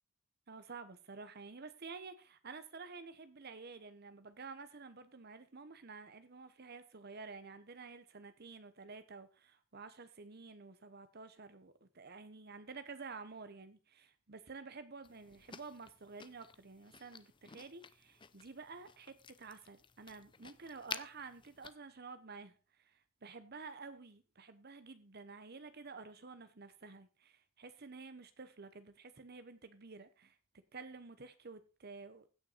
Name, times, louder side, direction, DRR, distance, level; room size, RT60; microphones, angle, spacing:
voice 1, 0.5-22.5 22.8-30.4 30.7-32.3, right 4 dB, 50° right, 1.0 m, -51 dB
sound 1, 15.0-21.7, left 6 dB, 25° left, 0.5 m, -52 dB
16.0 x 6.1 x 4.1 m
head